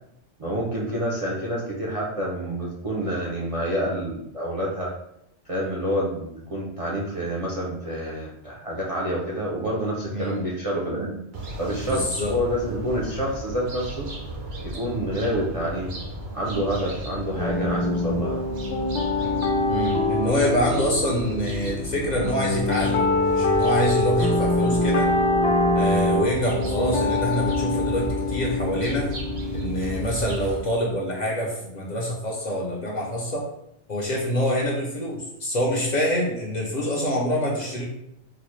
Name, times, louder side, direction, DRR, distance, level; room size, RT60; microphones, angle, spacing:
voice 1, 0.4-4.9 5.5-11.2 11.6-14.1 14.6-16.0 16.3-18.4, equal, 45° right, -5 dB, 0.4 m, -28 dB
voice 2, 10.1-10.4 11.8-12.3 19.7-25.1 25.7-29.1 29.5-33.4 33.9-37.8, equal, 50° left, -2 dB, 0.6 m, -26 dB
sound 1, 11.3-30.6, right 1 dB, 65° right, 0.9 m, -35 dB
sound 2, 17.4-30.0, left 2 dB, 85° left, 1.0 m, -24 dB
3.9 x 2.0 x 3.0 m, 0.78 s
omnidirectional pair, 1.1 m